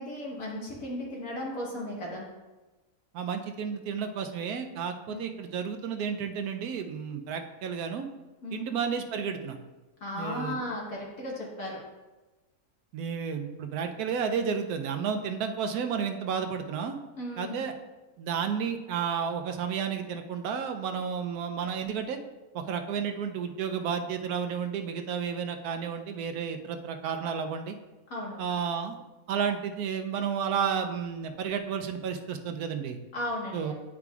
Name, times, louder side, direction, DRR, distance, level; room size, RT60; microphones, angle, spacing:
voice 1, 0.0-2.3 5.1-5.3 8.4-8.7 10.0-11.8 17.2-17.6 28.1-28.4 33.1-33.7, left 1 dB, 65° left, -4 dB, 1.9 m, -35 dB
voice 2, 3.1-8.1 8.5-9.6 10.1-10.6 12.9-17.0 17.4-17.7 18.2-22.2 22.5-27.8 28.4-29.0 29.3-33.0 33.5-33.7, right 7 dB, 85° right, 6 dB, 1.1 m, -32 dB
9.6 x 4.9 x 2.4 m, 1.1 s
omnidirectional pair, 1.6 m